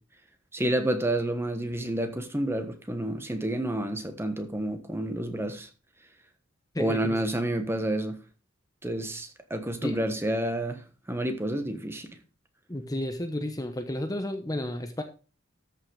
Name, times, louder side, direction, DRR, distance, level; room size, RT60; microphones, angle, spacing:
voice 1, 0.5-5.7 6.8-8.2 8.8-10.8 11.1-12.1, right 1 dB, 10° right, 1.3 m, -29 dB
voice 2, 6.7-7.2 9.8-9.9 12.7-15.0, left 1 dB, 20° left, 0.9 m, -32 dB
13.5 x 5.7 x 4.9 m
head